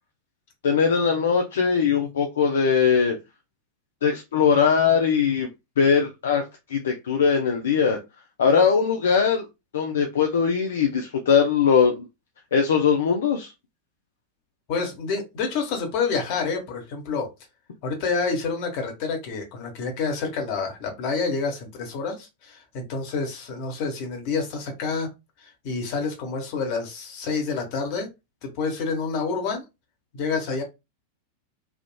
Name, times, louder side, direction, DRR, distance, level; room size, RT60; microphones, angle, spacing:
voice 1, 0.6-3.1 4.0-5.5 5.8-6.4 6.7-8.0 8.4-9.4 9.7-12.0 12.5-13.5, left 6 dB, 65° left, 3 dB, 0.5 m, -20 dB
voice 2, 14.7-17.3 17.8-25.1 25.4-28.1 28.4-29.6 30.1-30.6, left 4 dB, 45° left, 3 dB, 1.0 m, -28 dB
3.5 x 2.4 x 2.2 m, 0.24 s
figure-of-eight pair, 90°, 0 cm